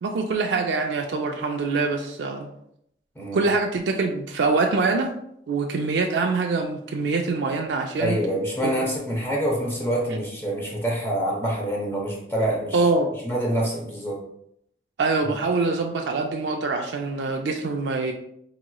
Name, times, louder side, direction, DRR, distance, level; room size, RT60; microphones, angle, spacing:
voice 1, 0.0-2.5 3.3-5.1 5.5-8.2 8.6-8.7 12.7-13.1 15.0-18.1, right 3 dB, 80° right, 2 dB, 0.4 m, -24 dB
voice 2, 3.2-3.5 8.0-12.9 13.2-14.2, right 1 dB, 15° left, -3 dB, 0.7 m, -26 dB
4.8 x 2.9 x 2.3 m, 0.74 s
head